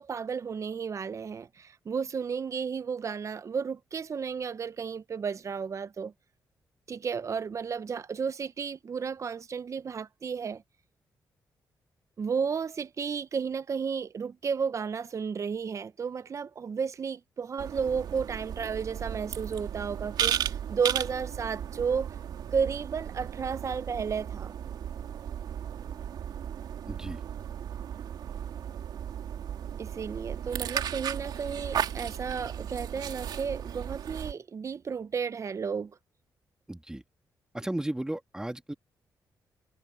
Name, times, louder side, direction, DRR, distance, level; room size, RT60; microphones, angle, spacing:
voice 1, 0.0-6.1 6.9-10.6 12.2-22.1 22.5-24.5 29.8-36.0, right 6 dB, 45° right, 0.8 m, -33 dB
sound 1, 17.6-34.3, right 9 dB, 85° right, 3.4 m, -35 dB
voice 2, 26.9-27.2 36.7-37.0 37.5-38.7, right 1 dB, 10° right, 2.3 m, -34 dB
cardioid pair, 95°, 7 cm